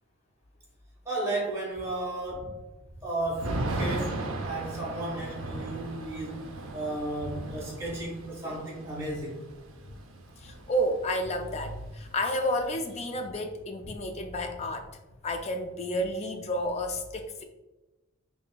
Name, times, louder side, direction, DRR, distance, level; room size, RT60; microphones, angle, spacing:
voice 1, 1.0-2.6 2.9-6.4 6.7-9.4, right 2 dB, 15° right, -6 dB, 1.1 m, -34 dB
Thunder / Rain, 3.4-11.2 11.5-11.6 11.9-13.2, right 2 dB, 70° right, 0.4 m, -37 dB
voice 2, 10.1-17.4, equal, 30° left, 5 dB, 0.3 m, -31 dB
4.9 x 2.6 x 2.2 m, 1.1 s
head